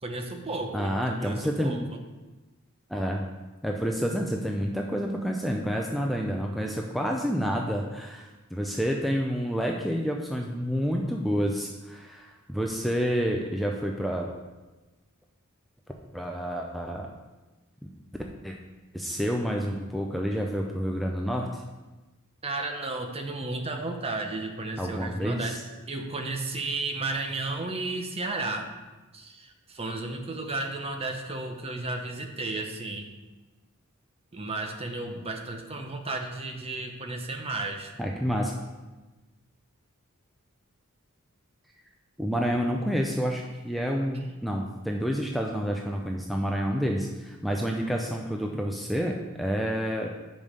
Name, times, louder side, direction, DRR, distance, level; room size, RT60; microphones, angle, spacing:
voice 1, 0.0-1.8 22.4-25.6 25.9-28.7 29.1-33.1 34.3-37.9, right 2 dB, 30° right, 4 dB, 0.8 m, -33 dB
voice 2, 0.7-1.9 2.9-3.2 3.6-14.4 16.1-17.1 18.4-18.6 18.9-21.6 24.8-25.6 38.0-38.6 42.2-50.1, equal, ahead, 0 dB, 0.5 m, -29 dB
5.4 x 5.3 x 6.4 m, 1.1 s
head